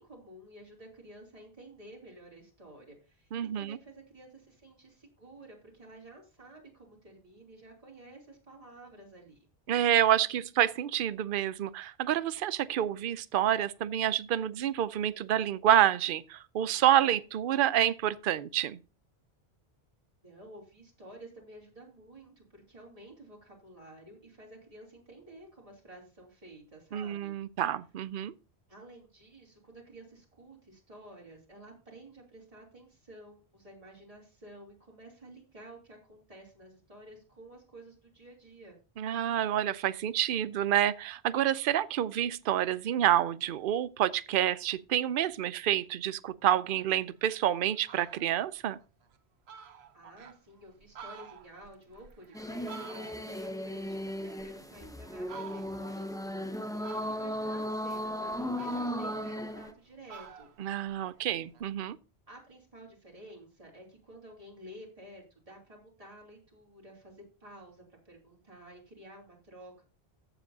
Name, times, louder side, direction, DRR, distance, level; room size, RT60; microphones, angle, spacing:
voice 1, 0.0-9.5 20.2-27.4 28.7-38.8 49.9-60.5 62.3-69.8, right 1 dB, 35° right, 3.2 m, -52 dB
voice 2, 3.3-3.8 9.7-18.8 26.9-28.3 39.0-48.8 60.6-62.0, right 11 dB, 60° right, 0.7 m, -28 dB
Fowl, 47.3-47.4 47.7-48.3 48.8-48.9 49.2-49.3 49.5-50.4 50.8-53.4 53.8-54.8 55.2-55.9 56.8-57.5 58.0-59.8 60.1-61.7, right 6 dB, 85° right, 1.1 m, -49 dB
sound 1, 52.3-59.7, equal, 5° left, 0.6 m, -36 dB
14.5 x 7.1 x 2.7 m
omnidirectional pair, 1.0 m